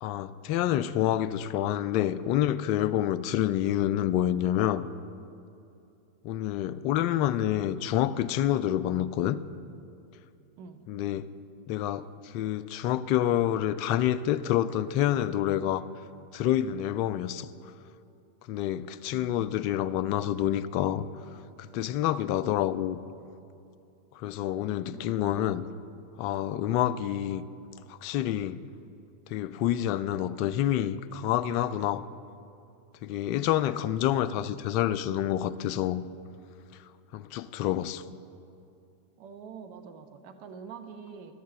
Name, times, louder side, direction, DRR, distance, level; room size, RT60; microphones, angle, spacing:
voice 1, 0.0-4.9 6.2-9.4 10.9-11.3 11.7-15.8 16.3-17.5 18.5-21.1 21.6-23.0 24.1-25.7 26.2-27.4 27.9-28.6 29.3-32.0 33.0-36.0 37.1-38.0, left 12 dB, 45° left, 14 dB, 0.3 m, -28 dB
voice 2, 19.2-19.5 24.7-25.3 39.2-41.3, right 6 dB, 45° right, 6 dB, 0.8 m, -46 dB
11.5 x 6.6 x 6.7 m, 2.7 s
figure-of-eight pair, 90°, 0 cm